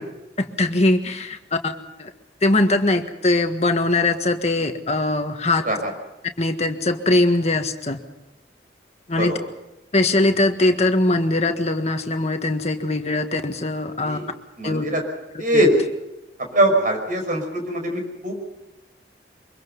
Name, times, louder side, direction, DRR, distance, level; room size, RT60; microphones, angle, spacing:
voice 1, 0.4-1.4 1.6-2.1 2.4-5.7 6.4-8.0 9.1-9.4 9.9-14.2 14.6-14.8 15.3-15.6, left 2 dB, 40° left, 6 dB, 1.6 m, -21 dB
voice 2, 14.6-15.0 15.4-15.7 16.5-18.4, right 1 dB, 50° right, 3 dB, 5.5 m, -22 dB
24.5 x 22.5 x 5.5 m, 0.96 s
head